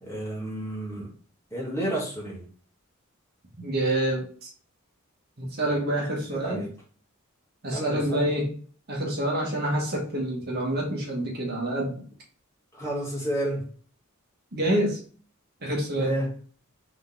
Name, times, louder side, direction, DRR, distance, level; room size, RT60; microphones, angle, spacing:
voice 1, 0.0-1.1 1.5-2.4 6.3-6.7 7.7-8.4 12.8-13.6 16.0-16.3, right 1 dB, 10° left, -5 dB, 2.0 m, -30 dB
voice 2, 3.6-4.5 5.4-6.7 7.6-8.6 8.9-12.0 14.5-15.0 15.6-16.1, right 1 dB, 45° right, -1 dB, 1.2 m, -27 dB
3.9 x 3.6 x 3.8 m, 0.43 s
head